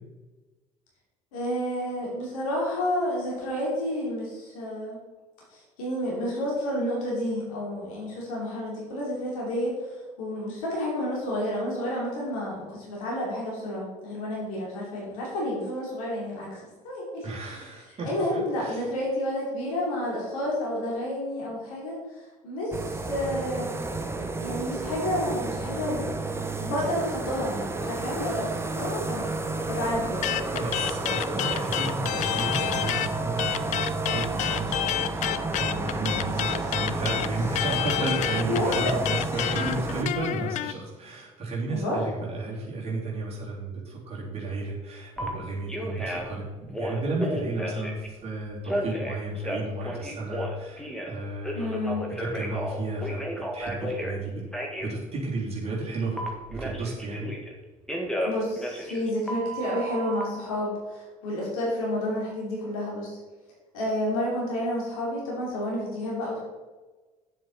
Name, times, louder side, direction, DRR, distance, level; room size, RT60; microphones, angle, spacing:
voice 1, 1.3-5.0 5.5-23.8 24.4-26.0 26.6-30.3 36.2-36.7 38.5-38.7 39.3-39.6 41.7-42.0 51.5-52.1 58.2-63.2 63.7-66.4, left 1 dB, 65° left, -4 dB, 2.9 m, -30 dB
voice 2, 17.2-18.1 18.6-18.8 30.4-54.4 54.8-56.2 56.5-57.3, right 2 dB, 30° right, -5 dB, 3.3 m, -33 dB
sound 1, 22.7-40.0, right 3 dB, 15° right, 0.8 m, -31 dB
sound 2, 30.2-33.1 33.4-40.7, left 13 dB, 40° left, 0.4 m, -29 dB
Telephone, 45.2-45.3 45.7-46.3 46.7-48.1 48.6-51.1 51.4-54.2 54.5-54.9 56.2-57.5 57.9-60.2, equal, 5° left, 1.8 m, -33 dB
9.0 x 7.5 x 4.2 m, 1.3 s
figure-of-eight pair, 60°, 19 cm